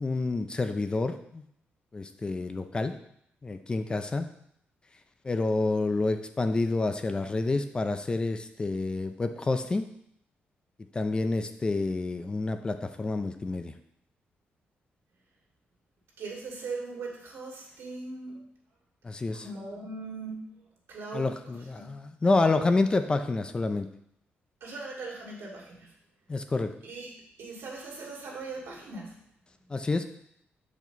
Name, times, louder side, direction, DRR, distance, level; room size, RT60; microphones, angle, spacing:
voice 1, 0.0-1.4 1.9-2.9 3.4-4.3 5.2-9.9 10.9-13.7 19.0-19.4 21.1-23.9 26.3-26.7 29.7-30.0, left 3 dB, 20° left, 8 dB, 0.4 m, -28 dB
voice 2, 16.2-18.4 19.3-21.9 24.6-25.9 26.8-29.2, right 3 dB, 80° right, -3 dB, 2.2 m, -40 dB
7.5 x 5.0 x 4.0 m, 0.72 s
cardioid pair, 135°, 4 cm